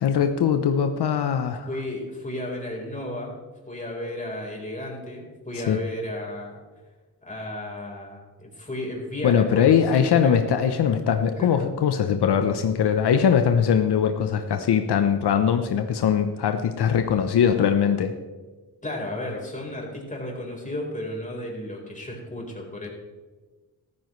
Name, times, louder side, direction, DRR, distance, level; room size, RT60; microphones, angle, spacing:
voice 1, 0.0-1.7 5.6-5.8 9.2-18.1, left 8 dB, 80° left, 7 dB, 0.8 m, -21 dB
voice 2, 1.7-3.3 3.7-6.6 7.2-10.5 11.4-11.5 18.8-22.9, left 1 dB, 20° left, -1 dB, 4.1 m, -33 dB
13.5 x 13.5 x 3.2 m, 1.3 s
cardioid pair, 80°, 39 cm